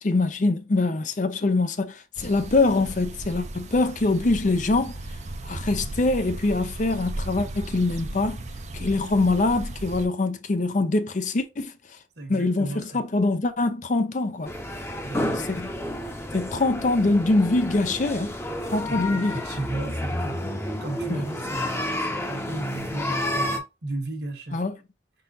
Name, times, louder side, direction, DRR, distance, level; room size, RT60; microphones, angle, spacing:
voice 1, 0.0-5.0 5.5-8.4 8.7-11.7 12.3-14.5 15.5-15.7 16.3-18.4 18.7-19.4 21.1-21.2 24.5-24.8, left 2 dB, 45° left, 0.5 m, -24 dB
sound 1, 2.2-10.1, right 1 dB, 40° right, 0.6 m, -36 dB
voice 2, 12.2-13.0 15.0-15.5 18.9-23.5 23.8-24.6, right 2 dB, 65° right, 1.4 m, -35 dB
sound 2, 14.4-23.6, left 1 dB, 15° left, 0.8 m, -30 dB
5.0 x 3.8 x 2.7 m
head